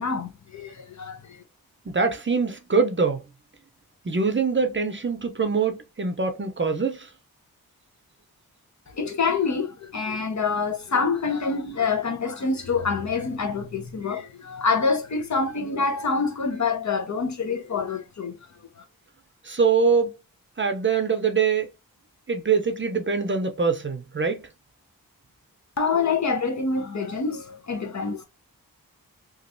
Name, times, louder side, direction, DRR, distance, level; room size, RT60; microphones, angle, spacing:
voice 1, 0.0-1.4 8.9-18.8 25.8-28.2, left 4 dB, 50° left, 0.7 m, -26 dB
voice 2, 1.9-3.2 4.1-7.1 19.5-20.1 20.6-21.7 22.3-24.4, right 5 dB, 30° right, 0.6 m, -23 dB
3.0 x 2.5 x 2.5 m
cardioid pair, 55°, 36 cm